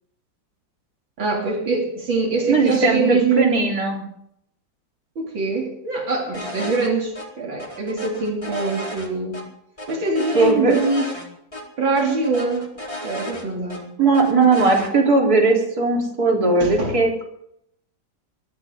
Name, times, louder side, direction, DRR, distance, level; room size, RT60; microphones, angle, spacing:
voice 1, 1.2-3.6 5.2-9.4 9.9-11.1 11.8-12.7 13.0-13.9 16.6-17.0, right 4 dB, 80° right, -1 dB, 3.9 m, -23 dB
voice 2, 2.5-4.0 10.3-10.8 14.0-17.2, right 3 dB, 50° right, 0 dB, 4.4 m, -18 dB
sound 1, 6.3-6.9 7.1-7.3 7.6-9.4 9.8-11.3 11.5-11.6 12.0-13.8 14.1-14.9, left 1 dB, 15° left, 4.3 m, -33 dB
23.0 x 15.5 x 3.9 m, 0.71 s
omnidirectional pair, 2.1 m